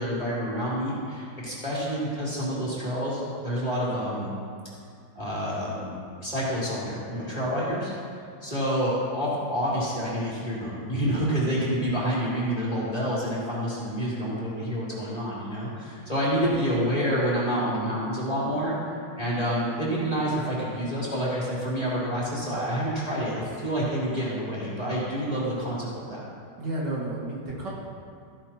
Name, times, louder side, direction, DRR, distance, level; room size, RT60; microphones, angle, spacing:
voice 1, 0.0-4.3 5.1-7.9 8.4-18.7 19.2-26.3, equal, 20° left, -8 dB, 2.9 m, -28 dB
voice 2, 26.6-27.7, right 2 dB, 70° right, -6 dB, 2.7 m, -31 dB
14.5 x 10.5 x 3.0 m, 2.3 s
omnidirectional pair, 2.0 m